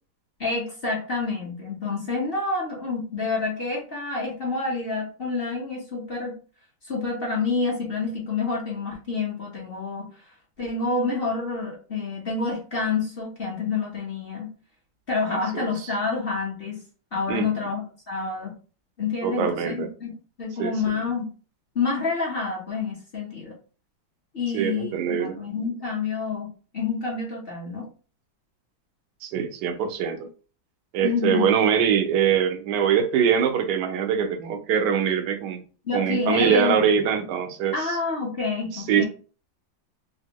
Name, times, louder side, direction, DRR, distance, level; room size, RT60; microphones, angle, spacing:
voice 1, 0.4-6.4 6.8-10.1 10.6-14.5 15.1-16.8 17.1-18.5 19.0-21.3 21.7-23.5 24.3-27.8 31.0-31.6 35.8-36.8 37.7-39.1, left 4 dB, 35° left, 1.0 m, -28 dB
voice 2, 15.3-15.9 17.3-17.5 19.2-19.9 20.6-20.7 24.5-25.4 29.2-30.3 30.9-35.6 35.9-38.0 38.7-39.1, right 7 dB, 70° right, 1.2 m, -23 dB
3.5 x 2.7 x 2.9 m
omnidirectional pair, 2.1 m